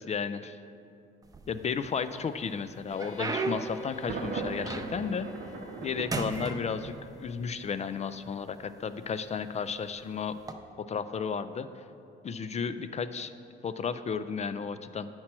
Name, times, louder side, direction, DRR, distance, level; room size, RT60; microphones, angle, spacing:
voice 1, 0.1-0.6 1.5-5.3 5.8-10.4 10.8-11.8 12.2-13.3 13.6-15.1, left 6 dB, 35° left, 12 dB, 0.3 m, -33 dB
sound 1, 1.2-2.0 2.5-5.2 5.6-5.8 6.1-7.3 8.1-8.2 8.9-9.2 10.3-10.5, right 3 dB, 20° right, 0.5 m, -35 dB
sound 2, 2.9-10.9, left 5 dB, 70° left, 1.1 m, -53 dB
Thunder, 4.1-7.1, right 4 dB, 55° right, 0.7 m, -39 dB
8.4 x 4.4 x 5.9 m, 2.5 s
cardioid pair, 90°, 20 cm